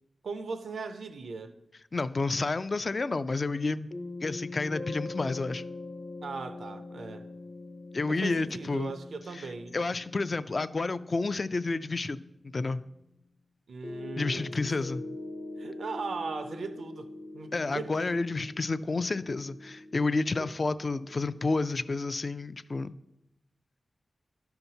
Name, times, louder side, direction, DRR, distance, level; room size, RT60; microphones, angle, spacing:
voice 1, 0.2-1.5 6.2-7.3 8.1-9.8 13.7-14.5 15.6-17.1 17.3-18.2 20.4-20.5, right 4 dB, 85° right, 0.5 m, -38 dB
voice 2, 1.9-3.9 4.2-5.6 7.9-8.9 9.3-9.5 9.7-12.2 12.5-12.8 14.2-15.0 17.5-22.9, left 3 dB, 50° left, 0.3 m, -30 dB
sound 1, 3.9-12.6 13.8-21.5, left 2 dB, 70° left, 1.2 m, -43 dB
11.5 x 5.7 x 2.7 m
cardioid pair, 50°, 0 cm